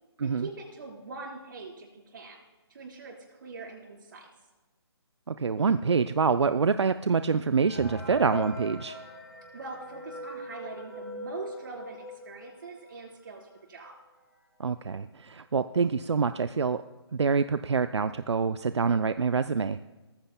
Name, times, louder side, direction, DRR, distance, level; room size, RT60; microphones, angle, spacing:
voice 1, 0.2-2.4 2.7-4.3 9.5-13.9, right 3 dB, 50° right, 0 dB, 4.3 m, -42 dB
voice 2, 5.3-9.0 14.6-16.8 17.1-19.8, right 5 dB, 90° right, 11 dB, 0.5 m, -26 dB
sound 1, 7.6-13.0 13.5-13.6 13.8-13.9 14.7-14.8 15.1-15.5, left 2 dB, 5° left, 2.4 m, -41 dB
19.0 x 14.5 x 2.2 m, 1.2 s
hypercardioid pair, 155°, 14 cm